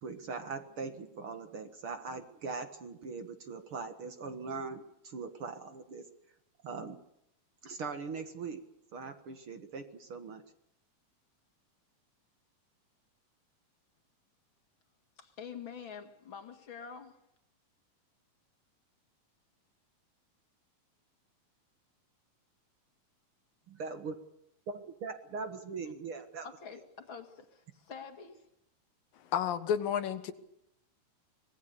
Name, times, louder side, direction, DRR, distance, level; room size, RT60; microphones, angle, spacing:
voice 1, 0.0-6.0 6.6-7.0 7.6-8.6 8.9-10.4 23.7-24.2 24.7-26.5, right 4 dB, 50° right, 1.8 m, -41 dB
voice 2, 15.2-17.2 26.4-28.5, left 6 dB, 40° left, 2.3 m, -46 dB
voice 3, 29.2-30.3, left 9 dB, 90° left, 3.1 m, -31 dB
25.0 x 19.5 x 6.9 m
omnidirectional pair, 3.9 m